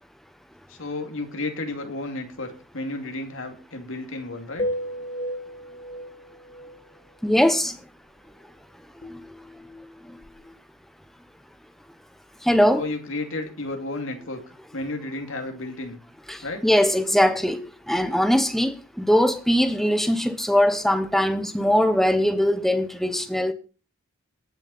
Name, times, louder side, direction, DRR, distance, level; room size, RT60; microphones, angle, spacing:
voice 1, 0.7-4.7 12.8-14.4 14.7-16.0 16.4-16.6, left 2 dB, 65° left, 2.5 m, -32 dB
sound 1, 4.6-6.8 9.0-10.6, equal, 35° left, 1.3 m, -34 dB
voice 2, 7.2-7.8 9.1-9.2 10.1-10.2 12.4-12.8 16.3-23.5, equal, ahead, 1.0 m, -21 dB
20.0 x 7.2 x 4.1 m
head